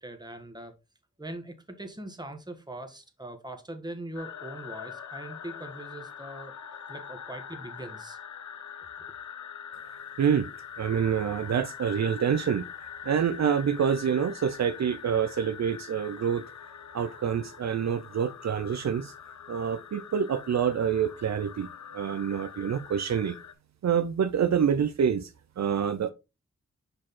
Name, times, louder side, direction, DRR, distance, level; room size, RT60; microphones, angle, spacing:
voice 1, 0.0-0.7 1.2-8.2 9.0-9.1, right 1 dB, 15° right, 1.7 m, -41 dB
sound 1, 4.1-23.5, left 8 dB, 75° left, 0.9 m, -44 dB
voice 2, 10.2-10.5 10.8-12.7 13.0-16.5 16.9-19.1 19.5-21.7 21.9-23.4 23.8-25.3 25.6-26.1, right 7 dB, 65° right, 0.6 m, -27 dB
6.4 x 5.1 x 3.7 m
cardioid pair, 70°, 29 cm